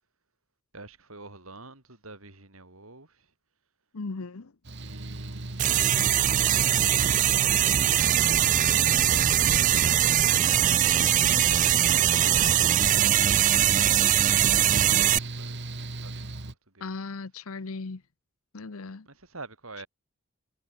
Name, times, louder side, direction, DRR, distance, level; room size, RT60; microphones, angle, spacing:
voice 1, 0.7-3.3 4.8-7.4 8.8-10.2 14.5-16.9 19.0-19.9, right 3 dB, 80° right, 6.8 m, -49 dB
voice 2, 3.9-4.5 16.8-18.0 18.5-19.1, left 3 dB, 80° left, 0.9 m, -37 dB
Mechanical fan, 4.6-16.5, right 2 dB, 55° right, 1.7 m, -37 dB
sound 1, 5.6-15.2, right 11 dB, 35° right, 0.3 m, -22 dB
head